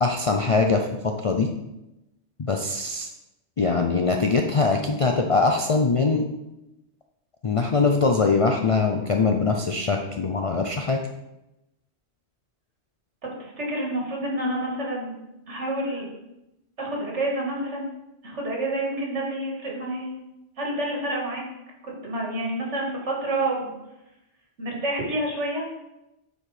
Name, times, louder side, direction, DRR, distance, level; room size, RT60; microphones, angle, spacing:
voice 1, 0.0-1.5 2.4-3.1 3.6-6.3 7.4-11.0, left 4 dB, 50° left, 3 dB, 0.4 m, -22 dB
voice 2, 13.4-15.2 15.5-16.1 16.8-17.9 18.2-20.1 20.6-21.4 21.8-23.8 24.6-25.7, right 1 dB, 75° right, -2 dB, 2.1 m, -28 dB
7.4 x 4.4 x 4.8 m, 0.93 s
omnidirectional pair, 1.2 m